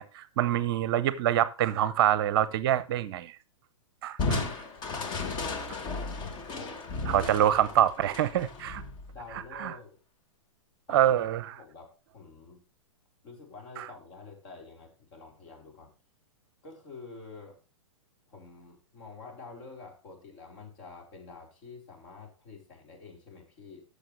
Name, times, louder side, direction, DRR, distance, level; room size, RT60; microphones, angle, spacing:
voice 1, 0.0-3.3 4.0-4.5 7.1-8.8 9.3-9.8 10.9-11.6 13.8-13.9, right 11 dB, 50° right, 0.7 m, -26 dB
Crushing, 4.2-9.6, left 4 dB, 25° left, 1.4 m, -35 dB
voice 2, 6.4-6.8 9.1-10.0 10.9-11.1 11.5-12.6 13.2-15.9 16.6-17.6 18.3-23.8, left 4 dB, 45° left, 4.4 m, -48 dB
14.0 x 6.6 x 3.2 m
hypercardioid pair, 120°, 17 cm